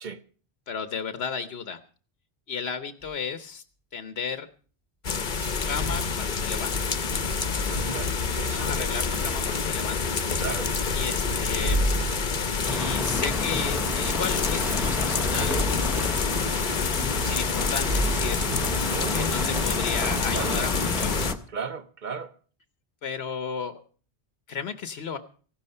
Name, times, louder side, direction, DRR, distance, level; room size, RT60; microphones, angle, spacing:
voice 1, 0.7-1.8 2.5-3.6 3.9-4.5 5.5-7.0 8.5-10.3 10.9-11.9 12.7-16.2 16.9-18.4 19.1-21.1 23.0-23.8 24.5-25.2, left 6 dB, 80° left, 1.1 m, -34 dB
sound 1, 3.0-3.1 5.4-6.0 7.1-8.4 11.0-12.7 15.4-16.4 17.2-17.6 17.9-19.2, equal, 80° right, 7.0 m, -32 dB
sound 2, 5.0-21.3, left 5 dB, 50° left, 1.0 m, -27 dB
voice 2, 7.7-8.9 10.4-10.7 18.9-19.6 20.3-20.6 21.5-22.3, right 5 dB, 50° right, 0.9 m, -35 dB
sound 3, 12.7-21.4, equal, 5° right, 0.5 m, -33 dB
15.0 x 12.0 x 5.5 m
omnidirectional pair, 1.1 m